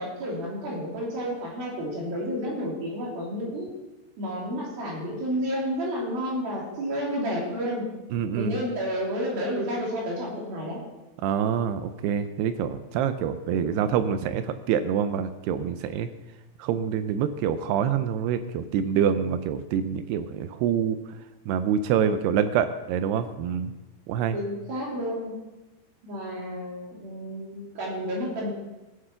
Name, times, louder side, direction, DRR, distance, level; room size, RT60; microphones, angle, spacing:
voice 1, 0.0-3.7 4.2-7.9 8.3-10.8 24.3-25.3 26.0-28.5, equal, 60° right, -4 dB, 4.7 m, -31 dB
voice 2, 8.1-8.5 11.2-16.1 16.6-21.2 21.5-23.7 24.1-24.4, right 8 dB, 80° right, 10 dB, 2.6 m, -26 dB
16.5 x 7.6 x 5.7 m, 1.1 s
omnidirectional pair, 4.9 m